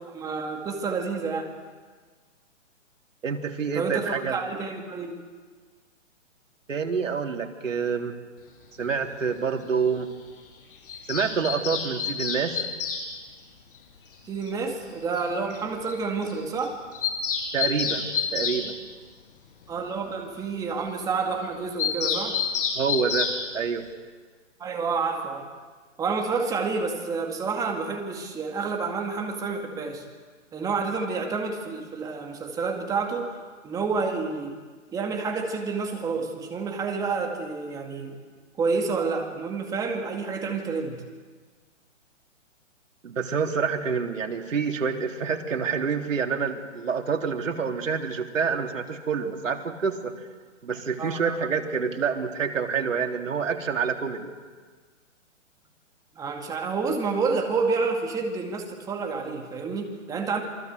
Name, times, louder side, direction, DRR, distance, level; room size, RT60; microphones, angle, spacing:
voice 1, 0.1-1.5 3.7-5.1 14.3-16.8 19.7-22.4 24.6-25.5 26.0-30.0 30.5-33.3 33.6-34.6 34.9-38.2 38.6-41.0 51.0-51.3 56.2-60.4, right 4 dB, 10° right, 2 dB, 2.2 m, -29 dB
voice 2, 3.2-4.4 6.7-8.2 8.8-10.1 11.1-12.7 17.5-18.8 22.7-23.9 43.0-50.1 50.6-54.3, right 6 dB, 80° right, 3 dB, 3.6 m, -27 dB
Bird vocalization bird call bird song, 10.9-13.0 14.5-14.6 14.8-14.9 15.1-15.2 15.5-15.6 15.9-16.0 16.2-16.4 16.6-18.6 21.8-23.4, left 7 dB, 45° left, 5.8 m, -28 dB
28.5 x 23.5 x 8.2 m, 1.5 s
hypercardioid pair, 160°, 38 cm